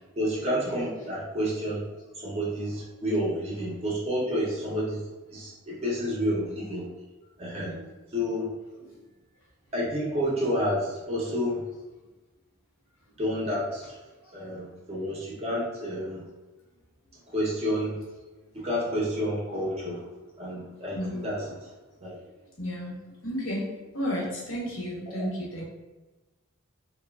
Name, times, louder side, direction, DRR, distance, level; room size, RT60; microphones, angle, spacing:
voice 1, 0.2-1.8 2.1-5.0 5.3-6.9 7.4-7.8 8.1-8.5 9.7-11.6 13.2-14.0 14.3-16.3 17.3-18.0 18.5-20.0 20.4-21.4 22.0-22.2, equal, 30° right, -6 dB, 0.5 m, -29 dB
voice 2, 22.6-23.0 23.2-25.6, equal, 70° left, -4 dB, 0.9 m, -33 dB
2.9 x 2.2 x 2.2 m, 1.2 s
head